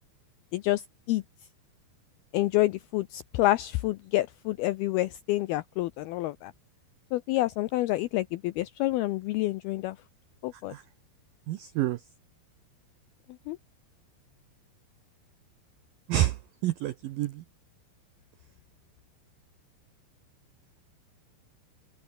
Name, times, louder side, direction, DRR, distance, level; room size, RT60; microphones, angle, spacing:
voice 1, 0.5-1.2 2.3-6.5 7.1-10.0 10.4-10.7 13.5-13.6, left 17 dB, 85° left, 2.2 m, -28 dB
voice 2, 11.5-12.0 16.1-16.3 16.6-17.4, right 14 dB, 85° right, 2.0 m, -28 dB
open air
omnidirectional pair, 5.3 m